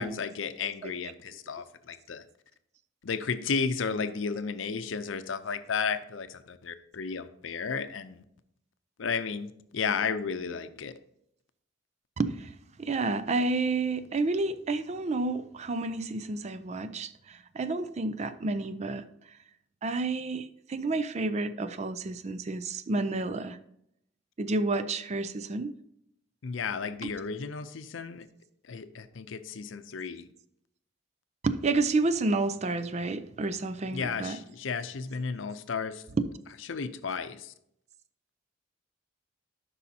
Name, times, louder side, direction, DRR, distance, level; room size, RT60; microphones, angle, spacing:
voice 1, 0.0-2.2 3.0-8.2 9.0-10.9 26.4-28.3 28.7-30.3 33.9-36.0 36.7-37.5, left 5 dB, 85° left, 11 dB, 0.6 m, -33 dB
voice 2, 12.2-12.5 12.8-19.0 19.8-23.6 24.4-25.7 27.0-27.1 31.4-34.4 36.2-36.3, right 3 dB, 35° right, 12 dB, 0.4 m, -30 dB
12.5 x 5.5 x 2.8 m, 0.75 s
head